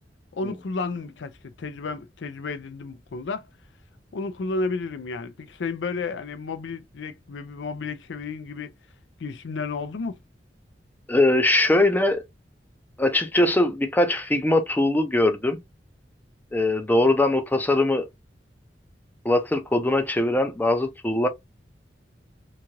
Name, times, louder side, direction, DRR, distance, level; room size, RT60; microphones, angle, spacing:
voice 1, 0.3-3.5 4.1-8.7 9.2-10.2, left 4 dB, 90° left, 0.5 m, -32 dB
voice 2, 11.1-12.2 13.0-15.6 16.5-18.1 19.2-21.3, left 1 dB, 10° left, 0.5 m, -21 dB
3.0 x 2.4 x 2.8 m
head